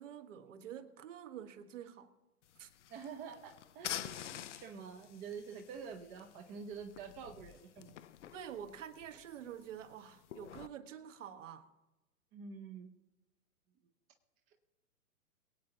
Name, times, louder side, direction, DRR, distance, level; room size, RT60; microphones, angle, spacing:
voice 1, 0.0-2.1 2.6-2.7 8.3-11.7, right 9 dB, 55° right, 1.4 m, -48 dB
sound 1, 2.4-10.7, left 11 dB, 50° left, 0.6 m, -49 dB
voice 2, 2.9-7.9 12.3-12.9, right 6 dB, 20° right, 0.7 m, -47 dB
23.0 x 8.5 x 2.9 m
figure-of-eight pair, 125°, 45 cm